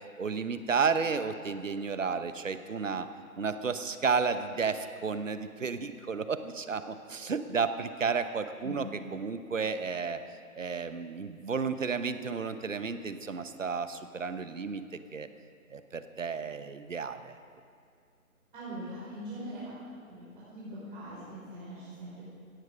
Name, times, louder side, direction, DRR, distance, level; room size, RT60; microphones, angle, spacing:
voice 1, 0.2-3.1 3.4-8.9 9.1-10.2 10.5-15.3 15.7-17.3, right 5 dB, 60° right, 11 dB, 1.1 m, -32 dB
voice 2, 18.5-19.8 20.1-22.2, right 1 dB, 35° right, -9 dB, 5.0 m, -42 dB
17.0 x 15.0 x 5.2 m, 2.3 s
figure-of-eight pair, 150°, 43 cm